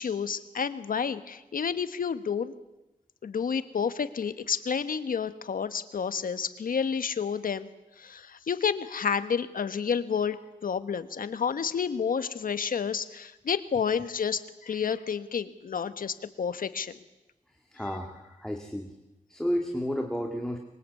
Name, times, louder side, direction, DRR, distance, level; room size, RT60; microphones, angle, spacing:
voice 1, 0.0-2.5 3.2-7.7 8.0-16.9, left 6 dB, 85° left, 11 dB, 1.3 m, -30 dB
voice 2, 17.7-18.9 19.3-20.6, equal, 5° left, 2 dB, 2.0 m, -32 dB
25.0 x 22.5 x 8.4 m, 1.0 s
wide cardioid pair, 130°, 14 cm